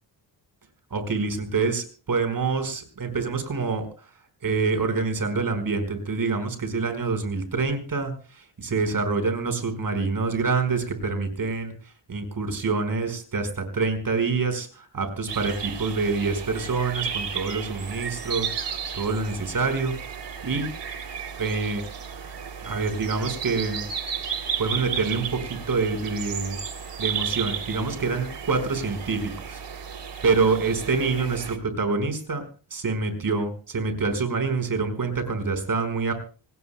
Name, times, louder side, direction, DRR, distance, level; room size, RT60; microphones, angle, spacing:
voice 1, 0.9-3.9 4.4-19.9 20.4-20.7 21.4-21.8 22.6-23.9 24.6-26.6 27.0-29.6 30.2-32.4 32.7-36.1, right 4 dB, 45° right, 8 dB, 4.9 m, -26 dB
sound 1, 15.3-31.6, right 7 dB, 60° right, 3.3 m, -34 dB
27.5 x 19.5 x 2.2 m, 0.38 s
wide cardioid pair, 160°, 47 cm